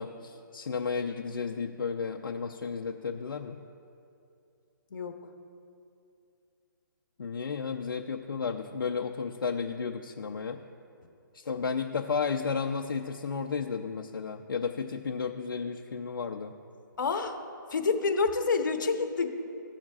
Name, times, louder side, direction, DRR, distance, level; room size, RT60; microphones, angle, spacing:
voice 1, 0.0-3.6 7.2-10.6 11.4-16.5, left 5 dB, 85° left, 2 dB, 0.6 m, -33 dB
voice 2, 17.0-17.4 17.7-19.3, left 4 dB, 65° left, 6 dB, 1.1 m, -28 dB
15.5 x 7.2 x 2.4 m, 2.6 s
hypercardioid pair, 170°, 11 cm